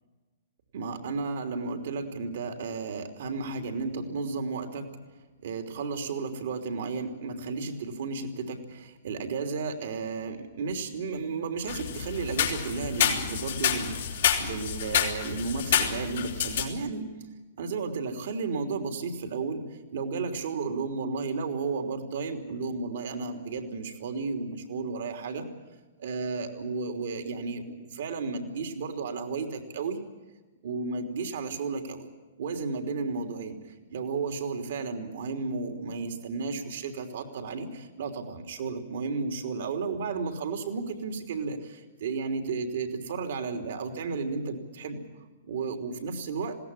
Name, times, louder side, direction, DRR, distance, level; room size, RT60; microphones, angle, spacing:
voice 1, 0.7-5.0 5.4-17.1 17.6-19.6 19.9-25.5 26.0-30.0 30.6-32.1 32.4-45.0 45.4-46.6, right 4 dB, 60° right, 5 dB, 3.2 m, -33 dB
sound 1, 11.7-16.6, left 8 dB, 65° left, 4.1 m, -28 dB
20.5 x 17.5 x 9.9 m, 1.3 s
figure-of-eight pair, 115°, 0 cm